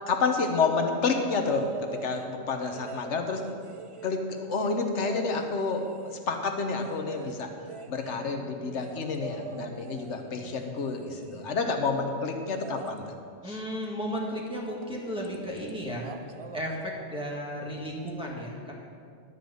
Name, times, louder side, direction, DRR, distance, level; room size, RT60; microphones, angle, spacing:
voice 1, 0.1-3.4 4.0-7.5 7.9-13.0 13.4-13.6, left 4 dB, 70° left, 4 dB, 1.3 m, -29 dB
sound 1, 1.4-2.3 2.7-6.2 6.7-11.6 12.5-13.0 14.8-14.9 15.2-15.7 16.0-16.7 18.1-18.2, right 5 dB, 60° right, 0.3 m, -45 dB
voice 2, 13.4-16.1 16.5-18.7, equal, 5° right, -4 dB, 1.8 m, -34 dB
12.0 x 5.4 x 7.7 m, 2.3 s
omnidirectional pair, 1.3 m